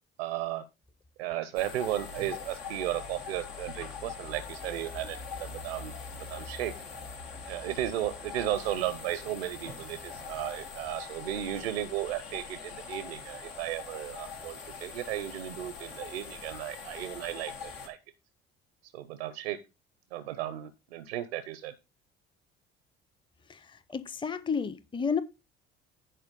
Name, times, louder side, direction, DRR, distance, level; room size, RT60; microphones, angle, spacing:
voice 1, 0.2-0.6 1.2-5.9 6.3-6.7 7.5-18.0 18.9-19.6 20.1-21.7, right 13 dB, 85° right, 0.6 m, -35 dB
sound 1, 1.5-17.9, left 5 dB, 85° left, 1.7 m, -42 dB
voice 2, 23.9-25.2, left 6 dB, 15° left, 0.6 m, -31 dB
10.0 x 4.4 x 5.2 m
hypercardioid pair, 60°, 30 cm